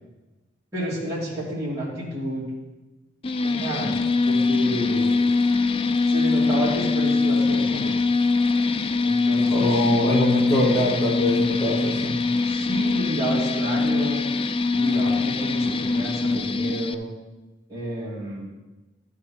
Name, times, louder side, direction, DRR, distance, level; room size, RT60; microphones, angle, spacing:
voice 1, 0.7-2.5 3.4-3.9 4.2-5.2 6.0-8.0 9.0-9.7 12.4-14.3 14.7-17.1 17.7-18.4, right 1 dB, 15° right, -10 dB, 3.0 m, -30 dB
sound 1, 3.2-16.9, left 3 dB, 30° left, 0.3 m, -23 dB
voice 2, 9.5-12.1, left 1 dB, 15° left, -7 dB, 1.8 m, -22 dB
13.0 x 4.8 x 4.4 m, 1.1 s
head